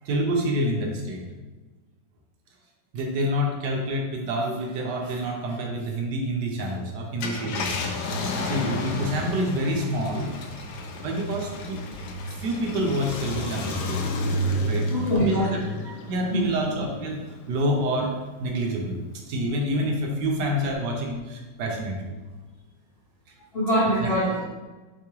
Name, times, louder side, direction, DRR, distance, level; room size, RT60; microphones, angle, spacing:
voice 1, 0.0-1.2 2.9-7.8 8.2-10.3 11.0-11.8 12.4-14.0 14.6-15.6 16.1-17.2 17.5-18.1 18.4-22.1 23.9-24.1, equal, 70° right, 1 dB, 1.3 m, -27 dB
Car, 7.0-17.9 18.4-18.5 20.5-20.7, left 1 dB, 75° left, 1.0 m, -31 dB
voice 2, 14.9-15.9 16.3-16.5 23.5-24.6, equal, 55° left, -7 dB, 0.7 m, -24 dB
4.7 x 3.5 x 3.0 m, 1.2 s
omnidirectional pair, 2.0 m